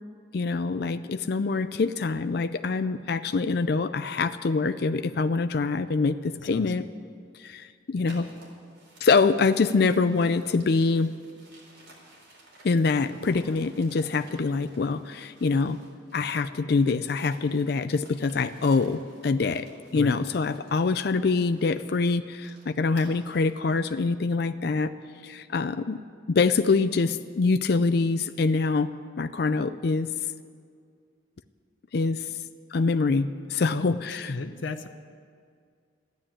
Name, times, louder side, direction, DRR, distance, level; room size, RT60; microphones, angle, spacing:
voice 1, 0.3-6.8 7.4-8.3 9.0-11.1 12.6-15.8 16.1-19.7 19.9-24.9 25.2-26.0 26.3-28.9 29.2-30.1 31.9-32.2 32.7-34.3, left 4 dB, 55° left, 10 dB, 0.4 m, -25 dB
voice 2, 6.5-6.9 19.9-20.2 33.7-34.9, left 3 dB, 75° left, 9 dB, 0.8 m, -35 dB
Wallet check, 8.0-16.4 16.7-23.5, right 1 dB, 75° right, 4.1 m, -54 dB
13.5 x 10.5 x 8.8 m, 2.1 s
head